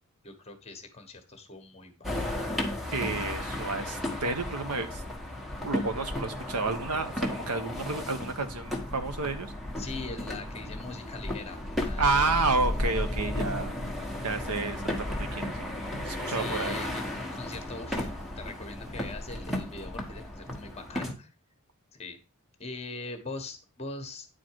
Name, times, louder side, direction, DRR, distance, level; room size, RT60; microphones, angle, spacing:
voice 1, 0.2-2.4 9.8-12.6 16.3-21.3 21.9-22.2 22.6-24.3, left 3 dB, 30° left, 6 dB, 1.3 m, -42 dB
sound 1, 2.0-21.1, left 1 dB, ahead, 1.3 m, -34 dB
voice 2, 2.9-5.0 5.6-9.5 12.0-13.8 14.2-15.7 16.0-16.8, right 3 dB, 85° right, 8 dB, 1.1 m, -30 dB
9.5 x 4.4 x 4.6 m, 0.31 s
head